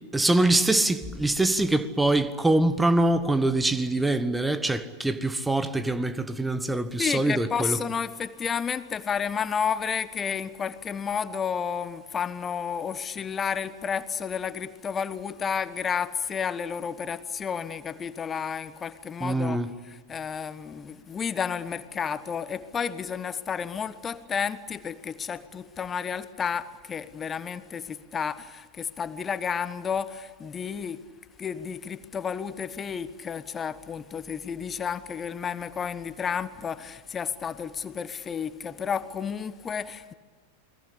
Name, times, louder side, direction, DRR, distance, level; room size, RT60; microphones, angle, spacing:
voice 1, 0.1-7.8 19.2-19.7, right 2 dB, 5° right, 1.4 m, -24 dB
voice 2, 7.0-19.6 19.9-31.0 31.4-40.1, left 7 dB, 20° left, 1.3 m, -31 dB
29.0 x 22.0 x 8.5 m
figure-of-eight pair, 90°, 0 cm